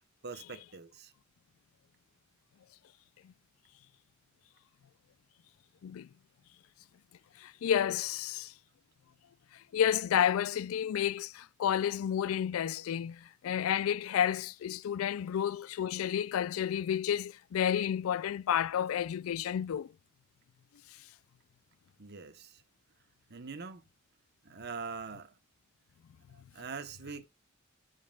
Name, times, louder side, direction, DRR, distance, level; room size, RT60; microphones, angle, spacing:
voice 1, 0.2-1.1 22.0-22.6 23.3-23.8 24.4-25.3 26.3-27.3, right 4 dB, 55° right, 1.0 m, -43 dB
voice 2, 7.4-8.5 9.7-19.9, left 9 dB, 80° left, 0.3 m, -31 dB
13.0 x 5.3 x 2.3 m
head